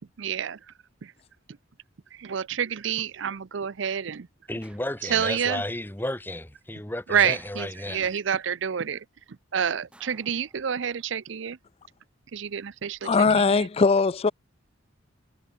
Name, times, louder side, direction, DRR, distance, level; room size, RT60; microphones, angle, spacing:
voice 1, 0.2-0.6 1.0-1.1 2.1-4.3 5.1-5.6 7.1-9.0 9.5-11.6 12.3-13.1 13.4-13.7, right 8 dB, 65° right, 0.5 m, -28 dB
voice 2, 4.5-8.1, left 1 dB, 10° left, 1.1 m, -33 dB
sound 1, 4.6-5.4 7.2-8.2 9.9-11.1 12.5-13.0, right 1 dB, 5° right, 5.6 m, -58 dB
voice 3, 13.0-14.3, left 4 dB, 30° left, 0.4 m, -20 dB
head